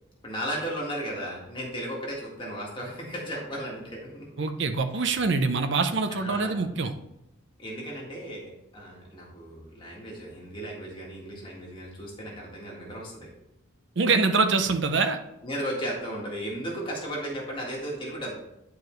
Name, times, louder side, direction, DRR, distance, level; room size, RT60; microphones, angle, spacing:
voice 1, 0.2-4.3 4.9-5.1 6.1-6.6 7.6-13.3 15.4-18.3, equal, 25° left, -4 dB, 1.8 m, -35 dB
voice 2, 4.4-6.9 14.0-15.2, right 4 dB, 60° right, 7 dB, 0.7 m, -24 dB
9.4 x 4.7 x 3.2 m, 0.87 s
head